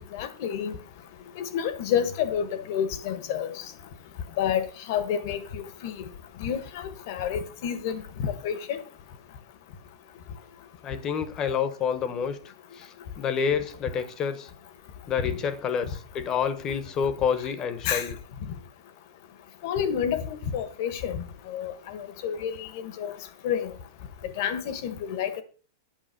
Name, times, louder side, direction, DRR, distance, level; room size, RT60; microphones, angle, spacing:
voice 1, 0.1-0.8 1.4-3.5 4.4-6.0 6.4-8.8 17.8-18.0 19.6-23.1 23.4-23.7 24.4-25.4, left 8 dB, 55° left, 1.4 m, -29 dB
voice 2, 10.8-12.4 12.8-12.9 13.2-14.5 15.1-18.2, left 7 dB, 25° left, 1.0 m, -28 dB
9.0 x 5.9 x 5.9 m
hypercardioid pair, 145°, 2 cm